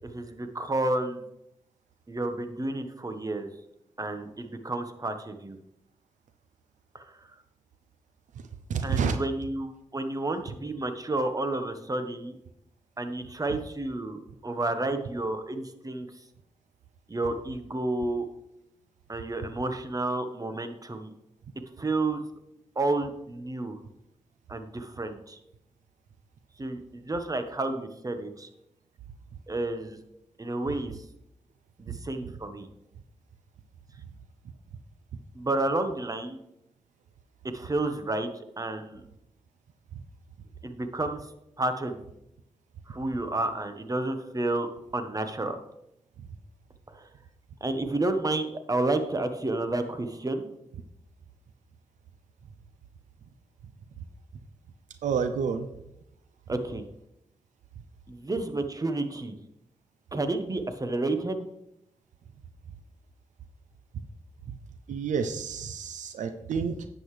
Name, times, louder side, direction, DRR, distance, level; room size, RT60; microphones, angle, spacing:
voice 1, 0.0-1.2 2.1-3.5 4.0-5.6 6.9-7.3 8.8-12.4 13.0-16.1 17.1-18.3 19.1-21.1 21.8-22.2 22.7-23.8 24.5-25.4 26.6-28.5 29.5-30.0 30.4-31.0 31.8-32.7 35.3-36.4 37.5-39.0 40.6-41.3 41.6-42.0 42.9-44.7 44.9-45.6 46.9-47.1 47.6-50.5 56.5-56.9 58.1-59.3 60.1-61.5, right 2 dB, 30° right, 8 dB, 1.2 m, -31 dB
voice 2, 8.7-9.2 55.0-55.7 64.9-66.9, right 6 dB, 90° right, 9 dB, 0.6 m, -29 dB
10.5 x 7.9 x 3.3 m, 0.83 s
cardioid pair, 55°, 12 cm